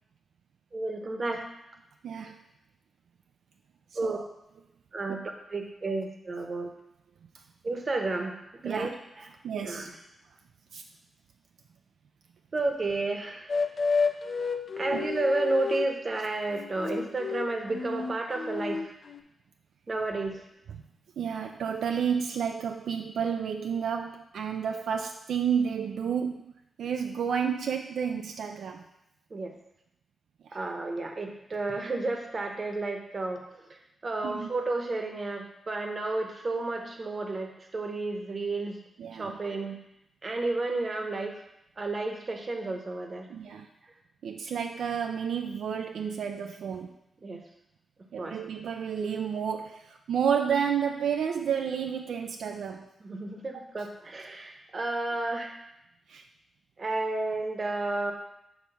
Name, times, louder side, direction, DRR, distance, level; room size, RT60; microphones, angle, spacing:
voice 1, 0.7-1.4 4.0-4.2 4.9-5.2 5.5-6.7 7.6-8.3 8.6-8.9 9.6-9.9 12.5-13.5 14.8-18.9 19.9-20.4 29.3-29.5 30.5-33.4 34.0-38.8 39.1-39.8 40.2-41.4 41.8-43.3 47.2-47.4 48.2-48.4 53.0-55.6 56.8-58.1, right 2 dB, 40° right, 4 dB, 0.9 m, -31 dB
voice 2, 2.0-2.3 4.0-4.2 8.6-8.9 9.4-9.9 10.7-10.8 14.9-15.0 21.2-26.4 26.8-28.9 34.2-34.5 39.0-39.4 43.3-43.7 44.2-46.9 48.1-52.9 53.5-53.6 56.1-56.2, right 7 dB, 80° right, 4 dB, 0.4 m, -31 dB
sound 1, 13.5-16.0 16.5-19.2, left 4 dB, 50° left, 0.5 m, -31 dB
7.1 x 3.1 x 5.6 m, 0.83 s
cardioid pair, 100°, 0 cm